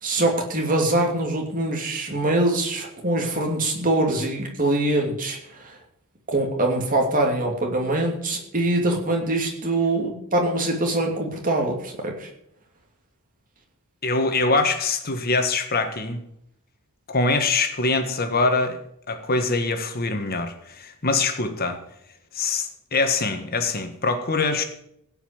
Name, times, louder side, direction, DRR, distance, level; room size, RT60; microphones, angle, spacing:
voice 1, 0.0-5.7 6.3-12.3, right 2 dB, 40° right, 1 dB, 2.8 m, -23 dB
voice 2, 14.0-16.2 17.1-18.8 19.1-21.8 22.3-24.6, left 3 dB, 45° left, 6 dB, 1.6 m, -23 dB
16.0 x 5.7 x 8.9 m, 0.75 s
head